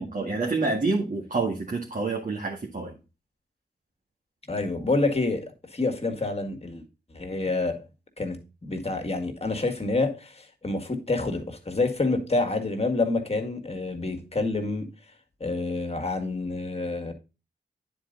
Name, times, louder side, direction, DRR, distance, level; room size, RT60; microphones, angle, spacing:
voice 1, 0.0-2.9, right 3 dB, 45° right, 1.9 m, -28 dB
voice 2, 4.5-6.8 7.1-7.8 8.2-14.9 15.4-17.1, left 3 dB, 35° left, 1.8 m, -28 dB
9.6 x 4.5 x 3.9 m
cardioid pair, 50°, 18 cm